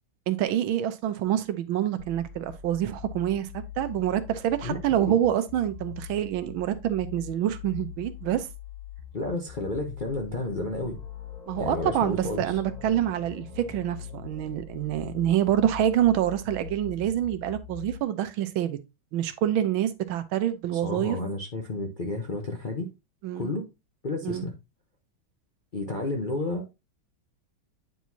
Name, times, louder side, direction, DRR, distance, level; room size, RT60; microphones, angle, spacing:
voice 1, 0.3-3.5 3.8-8.5 11.5-18.8 19.1-21.2 23.2-23.5 24.2-24.5, right 11 dB, 80° right, 1.5 m, -26 dB
sound 1, 2.0-18.0, left 10 dB, 70° left, 1.3 m, -42 dB
sound 2, 4.7-5.5 10.7-17.7, left 3 dB, 25° left, 1.2 m, -48 dB
voice 2, 9.1-11.0 11.6-12.5 20.7-22.9 23.3-23.6 24.0-24.5 25.7-26.6, left 2 dB, 45° left, 0.6 m, -31 dB
9.1 x 4.6 x 2.7 m
omnidirectional pair, 2.2 m